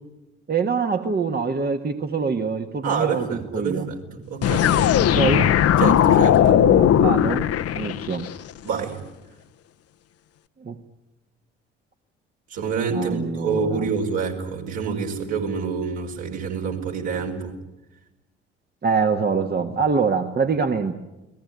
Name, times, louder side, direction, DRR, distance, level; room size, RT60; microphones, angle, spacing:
voice 1, 0.5-3.9 5.0-5.5 6.4-7.4 7.7-8.3 10.6-10.8 12.9-13.9 18.8-20.9, right 5 dB, 30° right, 6 dB, 1.6 m, -24 dB
voice 2, 2.8-4.9 5.8-6.6 8.6-9.0 12.5-17.5, right 5 dB, 60° right, 1 dB, 5.2 m, -27 dB
sound 1, 4.4-8.4, left 10 dB, 45° left, 1.0 m, -18 dB
30.0 x 19.0 x 9.6 m, 1.0 s
figure-of-eight pair, 45°, 33 cm